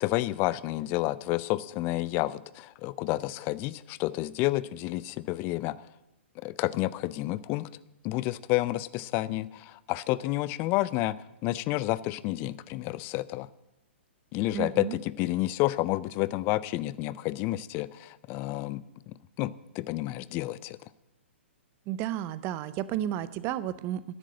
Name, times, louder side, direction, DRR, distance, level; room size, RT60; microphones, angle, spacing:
voice 1, 0.0-5.8 6.4-7.7 8.0-13.5 14.3-20.8, left 17 dB, 30° left, 19 dB, 0.4 m, -30 dB
voice 2, 14.5-15.0 21.9-24.0, right 11 dB, 30° right, 17 dB, 0.6 m, -32 dB
11.0 x 7.5 x 7.8 m, 0.95 s
figure-of-eight pair, 120°, 7 cm